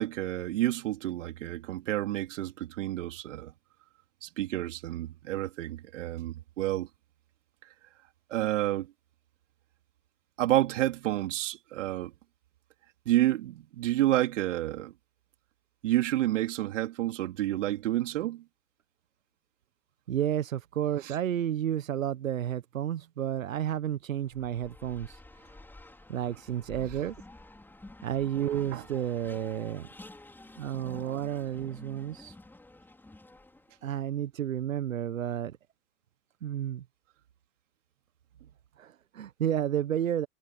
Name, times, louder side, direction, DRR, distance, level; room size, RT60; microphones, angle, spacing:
voice 1, 0.0-3.5 4.2-6.9 8.3-8.9 10.4-12.1 13.1-14.9 15.8-18.4 21.1-21.2 28.7-28.8, right 14 dB, 65° right, 3.8 m, -29 dB
voice 2, 20.1-25.5 26.1-27.2 28.0-29.9 30.6-32.4 33.8-35.6 36.4-36.8 38.8-40.3, right 10 dB, 85° right, 1.1 m, -31 dB
Race car auto racing, 24.2-33.9, left 2 dB, 5° left, 5.5 m, -50 dB
hypercardioid pair, 115°, 39 cm